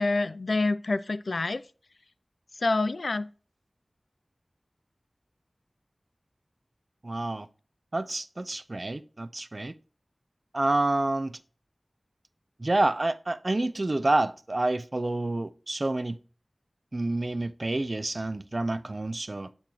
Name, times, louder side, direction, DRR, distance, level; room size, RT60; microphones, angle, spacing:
voice 1, 0.0-1.6 2.6-3.3, left 3 dB, 75° left, 0.3 m, -27 dB
voice 2, 7.0-7.5 7.9-9.7 10.5-11.4 12.6-16.2 16.9-19.5, right 2 dB, 50° right, 0.5 m, -28 dB
8.5 x 3.9 x 3.0 m
wide cardioid pair, 50°, 0 cm